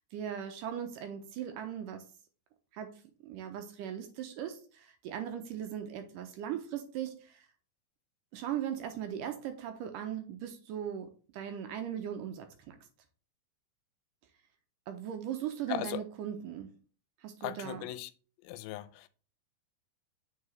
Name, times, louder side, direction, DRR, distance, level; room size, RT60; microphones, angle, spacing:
voice 1, 0.1-2.0 2.7-7.5 8.3-12.8 14.9-16.7 17.2-17.9, right 9 dB, 75° right, 2.1 m, -39 dB
voice 2, 15.7-16.0 17.4-18.1 18.4-19.1, left 13 dB, 85° left, 2.4 m, -38 dB
8.3 x 4.7 x 3.2 m
omnidirectional pair, 4.2 m